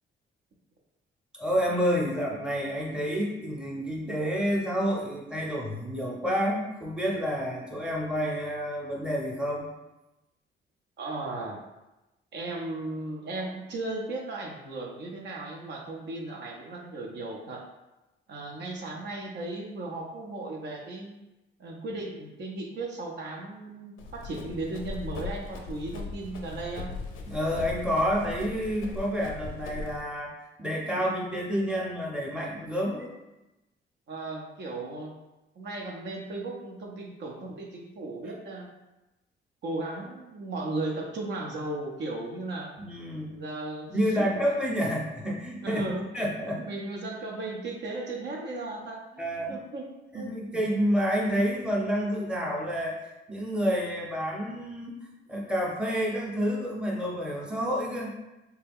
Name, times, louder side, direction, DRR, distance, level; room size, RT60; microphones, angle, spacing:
voice 1, 1.3-9.7 27.2-33.1 42.8-43.4 43.9-45.9 46.1-46.6 49.2-49.6 50.1-55.0 55.3-58.2, equal, 5° right, -3 dB, 0.7 m, -29 dB
voice 2, 11.0-11.6 12.3-17.7 18.3-21.2 21.6-26.9 34.1-35.1 35.6-38.7 39.6-42.7 43.3-43.9 44.2-44.3 45.6-46.1 46.6-49.9 50.1-50.6, right 2 dB, 60° right, 0 dB, 0.6 m, -36 dB
Run, 24.0-30.0, left 3 dB, 90° left, 0.5 m, -39 dB
3.3 x 2.2 x 3.4 m, 1.0 s
cardioid pair, 90°, 20 cm